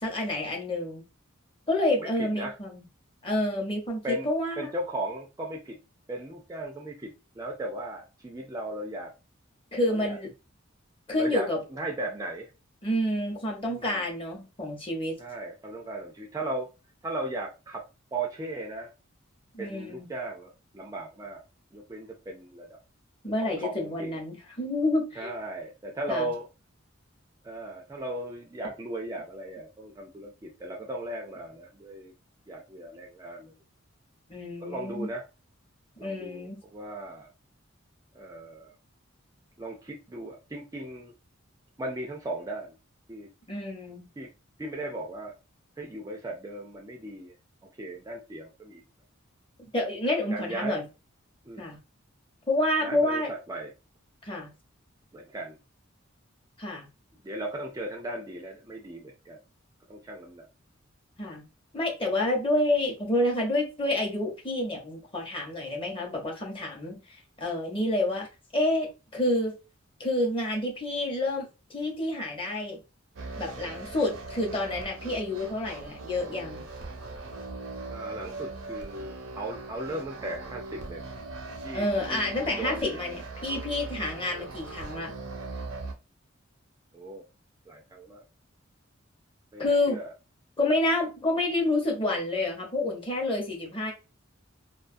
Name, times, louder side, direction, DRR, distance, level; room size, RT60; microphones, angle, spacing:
voice 1, 0.0-1.0 1.7-2.8 3.2-4.7 9.7-10.3 11.1-11.6 12.8-15.2 19.5-20.1 23.2-25.3 26.1-26.3 34.3-35.1 36.0-36.6 43.5-44.1 49.7-50.8 51.6-51.8 52.5-53.3 54.2-54.5 56.6-56.9 61.2-61.4 61.7-68.3 68.5-69.5 70.0-72.8 73.4-76.6 81.7-85.1 89.6-90.0 90.6-93.9, left 1 dB, 25° left, 0.8 m, -28 dB
voice 2, 2.0-2.6 4.0-4.3 4.6-5.8 6.1-9.1 9.9-10.2 11.2-12.5 13.7-14.0 15.2-16.7 17.0-17.8 18.1-18.9 19.6-21.4 21.7-22.7 23.4-24.2 25.1-26.5 27.4-32.1 32.5-33.6 34.6-35.2 36.0-37.3 38.1-38.7 39.6-41.1 41.8-42.8 43.1-43.3 44.2-44.3 44.6-45.3 45.8-47.4 47.8-48.8 50.3-50.8 51.4-51.6 52.8-53.7 55.1-55.6 57.2-59.4 59.9-60.5 75.1-75.2 77.9-81.9 82.1-82.2 82.5-82.9 86.9-87.3 87.7-88.2 89.5-90.1, right 1 dB, 15° right, 0.3 m, -37 dB
sound 1, 73.2-85.9, right 3 dB, 85° right, 0.6 m, -40 dB
2.3 x 2.2 x 2.5 m
head